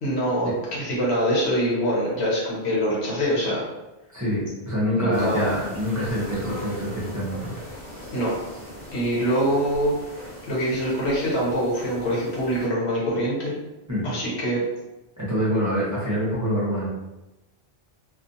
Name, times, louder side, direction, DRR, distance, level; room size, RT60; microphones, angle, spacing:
voice 1, 0.0-3.6 5.0-5.5 8.1-8.3 8.9-9.9 10.5-13.5 14.0-14.6, equal, 85° left, -5 dB, 1.2 m, -24 dB
voice 2, 4.1-7.5 13.9-14.1 15.2-16.9, equal, 20° right, -9 dB, 0.7 m, -26 dB
sound 1, 5.1-12.7, left 1 dB, 50° left, 1.3 m, -40 dB
2.4 x 2.4 x 2.6 m, 1.0 s
omnidirectional pair, 1.1 m